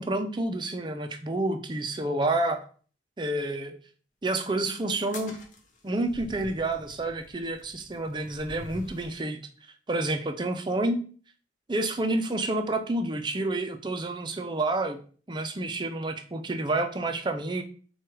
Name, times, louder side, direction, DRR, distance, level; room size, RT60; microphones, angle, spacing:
voice 1, 0.0-2.7 3.2-3.7 4.2-5.4 5.8-9.4 9.9-11.0 11.7-15.0 15.3-17.6, right 2 dB, 25° right, 6 dB, 0.5 m, -29 dB
sound 1, 5.0-9.2, left 1 dB, 45° left, 0.8 m, -46 dB
4.6 x 2.3 x 4.5 m, 0.41 s
head